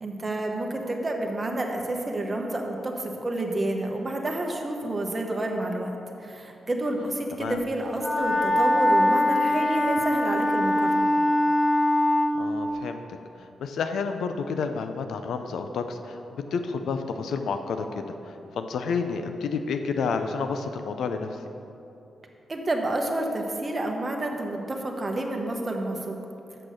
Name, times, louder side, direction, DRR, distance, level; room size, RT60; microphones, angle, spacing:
voice 1, 0.0-11.1 22.5-26.2, right 1 dB, 30° right, 1 dB, 1.0 m, -29 dB
Wind instrument woodwind instrument, 8.0-12.4, left 1 dB, 30° left, 0.9 m, -22 dB
voice 2, 12.4-13.0 13.4-21.4, left 5 dB, 85° left, 7 dB, 0.4 m, -30 dB
6.6 x 6.1 x 6.3 m, 2.8 s
cardioid pair, 75°, 0 cm